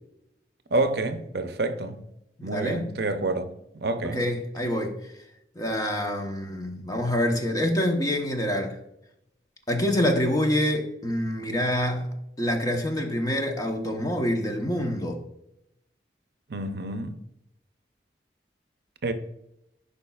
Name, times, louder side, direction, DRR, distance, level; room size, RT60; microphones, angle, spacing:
voice 1, 0.7-2.0 2.4-3.5 3.7-4.2 16.5-17.2 19.0-19.1, right 2 dB, 65° right, 0.6 m, -28 dB
voice 2, 2.4-2.9 4.0-5.1 5.5-8.8 9.7-15.2, left 1 dB, 20° left, 0.9 m, -26 dB
11.0 x 5.1 x 2.4 m
head